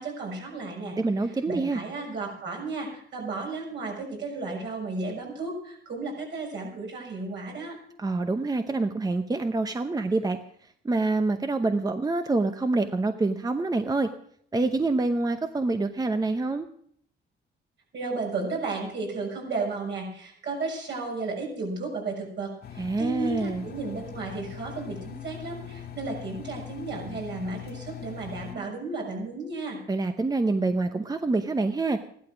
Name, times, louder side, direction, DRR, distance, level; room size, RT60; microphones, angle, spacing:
voice 1, 0.0-1.0 1.5-7.8 17.9-29.8, right 3 dB, 65° right, -1 dB, 6.6 m, -33 dB
voice 2, 1.0-1.8 8.0-10.4 10.8-14.1 14.5-16.7 22.8-23.7 29.9-32.0, right 3 dB, 20° right, 8 dB, 0.8 m, -26 dB
Engine, 22.6-28.6, left 10 dB, 55° left, 1.9 m, -41 dB
14.5 x 12.0 x 6.1 m, 0.65 s
cardioid pair, 90°, 20 cm